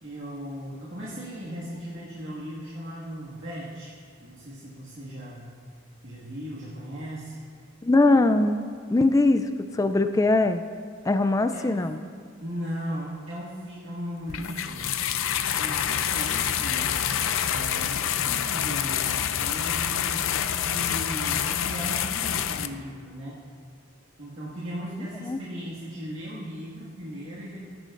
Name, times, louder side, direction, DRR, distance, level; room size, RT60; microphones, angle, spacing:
voice 1, 0.0-3.9 4.2-5.5 6.0-7.4 11.5-11.9 12.4-14.9 15.5-17.0 17.5-23.4 24.2-27.7, equal, 65° right, -8 dB, 1.9 m, -37 dB
voice 2, 7.8-8.6 8.9-9.4 9.7-10.6 11.1-12.0 25.2-25.4, left 2 dB, 15° left, 9 dB, 0.3 m, -21 dB
sound 1, 14.3-22.7, left 9 dB, 80° left, 0.5 m, -27 dB
18.5 x 10.5 x 2.5 m, 2.1 s
head